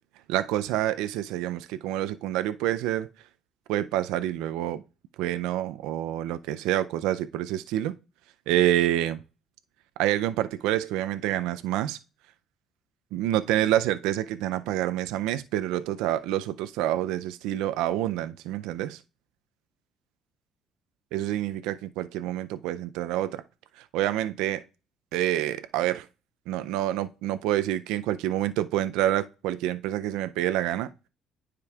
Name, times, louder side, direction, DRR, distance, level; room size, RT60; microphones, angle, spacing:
voice 1, 0.3-3.1 3.7-4.8 5.2-7.9 8.5-9.2 10.0-12.0 13.1-19.0 21.1-23.4 23.8-24.6 25.1-26.1 26.5-31.1, right 13 dB, 85° right, 0.4 m, -27 dB
9.6 x 5.0 x 2.3 m
cardioid pair, 105°, 0 cm